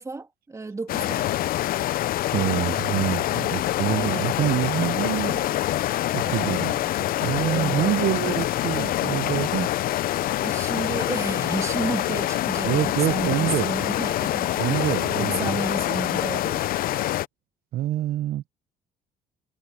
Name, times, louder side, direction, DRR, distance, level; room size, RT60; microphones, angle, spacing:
voice 1, 0.0-1.4 3.9-4.3 6.3-6.9 7.4-8.3 10.4-16.8, right 3 dB, 20° right, 2.6 m, -33 dB
sound 1, 0.9-17.3, left 14 dB, 60° left, 0.5 m, -25 dB
voice 2, 2.3-5.5 6.1-6.7 7.2-9.7 12.6-13.7 14.6-15.6 17.7-18.5, right 13 dB, 65° right, 0.7 m, -26 dB
cardioid pair, 110°, 17 cm